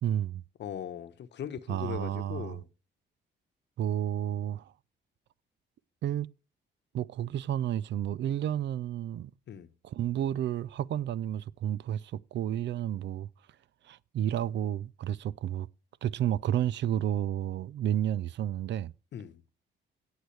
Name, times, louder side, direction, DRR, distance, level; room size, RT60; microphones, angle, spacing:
voice 1, 0.0-0.4 1.7-2.6 3.8-4.7 6.0-6.3 6.9-9.3 9.8-13.3 13.8-15.7 16.0-18.9, right 11 dB, 65° right, 0.5 m, -31 dB
voice 2, 0.6-2.7 9.5-9.7 19.1-19.4, left 9 dB, 60° left, 1.1 m, -39 dB
17.5 x 6.4 x 3.3 m
cardioid pair, 90°, 20 cm